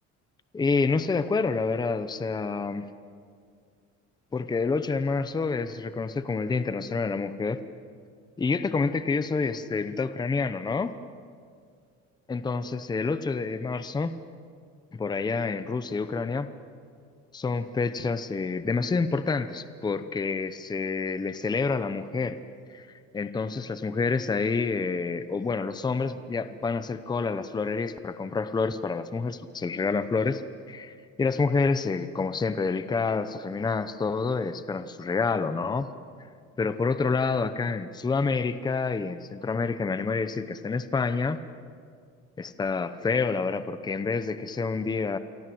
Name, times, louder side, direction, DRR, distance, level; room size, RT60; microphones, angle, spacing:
voice 1, 0.5-2.9 4.3-7.6 8.4-10.9 12.3-14.2 14.9-16.5 17.3-22.4 22.7-22.9 23.1-30.4 30.7-35.9 36.6-41.4 42.4-45.2, left 4 dB, 15° left, 12 dB, 0.8 m, -28 dB
27.5 x 24.0 x 7.8 m, 2.2 s
cardioid pair, 155°, 29 cm